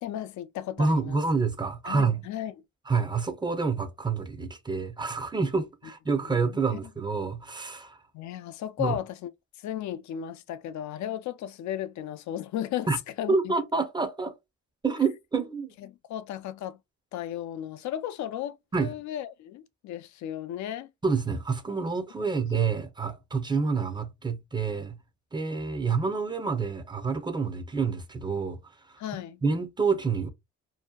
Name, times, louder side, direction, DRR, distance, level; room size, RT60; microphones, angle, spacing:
voice 1, 0.0-1.2 1.8-2.5 6.2-6.8 8.1-9.3 9.6-12.9 13.2-13.5 15.8-16.8 17.1-20.9 22.2-22.3 29.0-29.4, left 11 dB, 70° left, 0.4 m, -35 dB
voice 2, 0.8-2.3 2.9-8.0 8.8-9.0 12.9-13.0 13.3-14.3 14.8-15.7 18.7-18.9 21.0-25.0 25.3-28.6 29.4-30.3, right 4 dB, 15° right, 0.5 m, -28 dB
2.7 x 2.1 x 2.2 m
cardioid pair, 90°, 30 cm